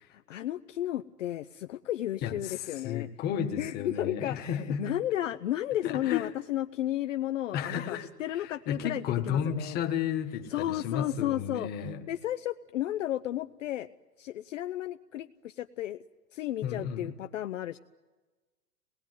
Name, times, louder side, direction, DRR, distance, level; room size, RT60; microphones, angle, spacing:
voice 1, 0.1-3.1 3.6-9.8 10.5-13.9 14.2-16.0 16.3-17.8, left 13 dB, 50° left, 10 dB, 0.8 m, -33 dB
voice 2, 2.2-4.9 5.8-6.3 7.5-8.1 8.3-12.0 16.6-17.2, left 8 dB, 20° left, 6 dB, 1.5 m, -33 dB
26.0 x 20.0 x 9.5 m, 1.3 s
hypercardioid pair, 150°, 47 cm